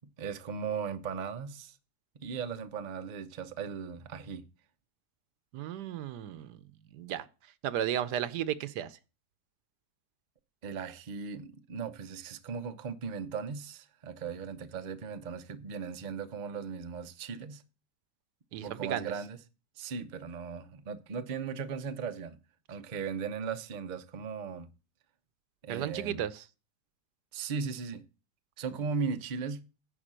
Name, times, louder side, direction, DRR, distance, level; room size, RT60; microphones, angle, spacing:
voice 1, 0.2-1.7 2.1-4.5 10.6-17.6 18.6-19.4 19.8-22.4 22.7-24.7 25.6-26.2 27.3-28.0 28.6-29.7, right 6 dB, 45° right, 0.5 m, -37 dB
voice 2, 5.5-6.6 6.9-9.0 18.5-19.1 25.7-26.5, right 10 dB, 80° right, 1.3 m, -34 dB
10.5 x 4.0 x 7.4 m
omnidirectional pair, 1.8 m